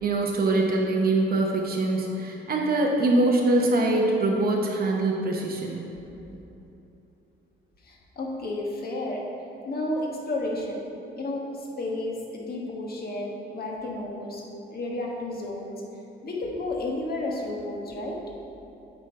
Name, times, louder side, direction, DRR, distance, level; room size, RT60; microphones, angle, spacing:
voice 1, 0.0-5.8, right 2 dB, 50° right, 0 dB, 0.8 m, -23 dB
voice 2, 7.8-9.2 9.7-10.8 11.2-14.4 14.7-15.8 16.2-18.2, left 2 dB, 50° left, -1 dB, 1.5 m, -32 dB
8.5 x 4.4 x 4.6 m, 2.9 s
cardioid pair, 90°, 20 cm